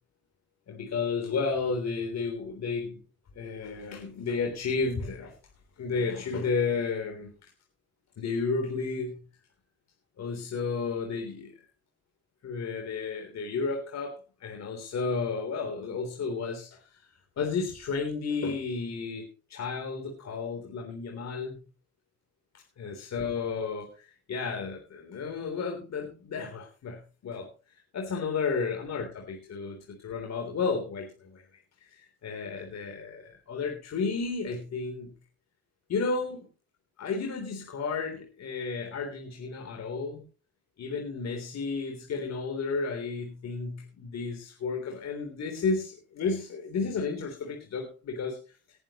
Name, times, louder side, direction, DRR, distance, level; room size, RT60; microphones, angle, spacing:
voice 1, 0.7-3.0 3.3-5.3 5.8-7.5 8.2-9.2 10.2-11.5 12.4-14.1 14.4-21.6 22.8-35.1 35.9-36.5 37.0-40.2 40.8-48.4, left 4 dB, 60° left, 2 dB, 3.6 m, -32 dB
19.0 x 11.0 x 3.1 m, 0.33 s
cardioid pair, 90°, 30 cm